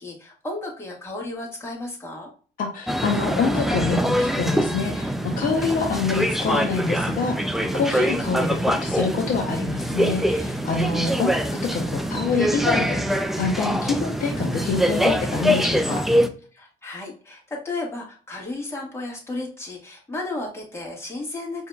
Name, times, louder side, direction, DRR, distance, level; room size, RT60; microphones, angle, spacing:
voice 1, 0.0-2.3 16.5-21.7, left 2 dB, 15° left, -2 dB, 1.5 m, -33 dB
voice 2, 2.6-11.4 11.7-16.0, left 4 dB, 55° left, 1 dB, 0.7 m, -26 dB
sound 1, 2.9-16.3, equal, ahead, 0.3 m, -24 dB
4.7 x 2.8 x 2.3 m, 0.40 s
cardioid pair, 110°, 17 cm